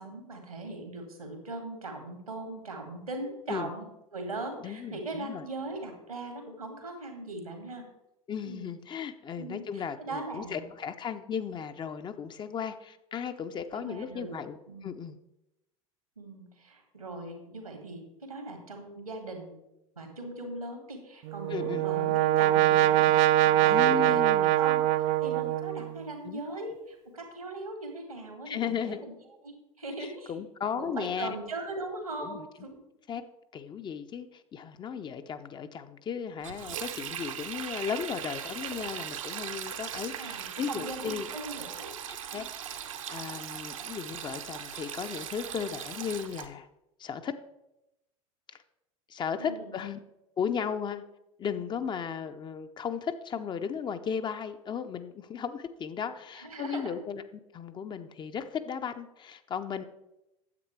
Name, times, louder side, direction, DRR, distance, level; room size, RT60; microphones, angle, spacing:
voice 1, 0.0-7.9 8.4-8.7 9.3-10.7 13.7-14.4 14.7-14.9 16.2-19.6 20.0-29.1 29.4-30.3 30.7-32.8 40.0-41.9 42.3-42.5 49.4-49.7 56.4-57.0, right 2 dB, 85° right, 5 dB, 2.2 m, -40 dB
voice 2, 4.6-5.4 8.3-14.6 14.8-15.2 21.5-21.8 23.7-24.6 26.2-26.4 28.5-29.0 30.0-31.3 32.2-32.5 33.1-33.2 33.5-41.3 42.1-46.7 47.0-47.3 49.1-50.0 50.4-51.0 51.4-57.2 57.5-59.8, left 7 dB, 25° left, 10 dB, 0.6 m, -35 dB
Brass instrument, 21.2-26.0, right 14 dB, 45° right, 0.4 m, -23 dB
Sink (filling or washing), 36.4-46.5, right 9 dB, 65° right, 0.9 m, -39 dB
9.7 x 7.9 x 4.6 m, 0.90 s
figure-of-eight pair, 80°, 18 cm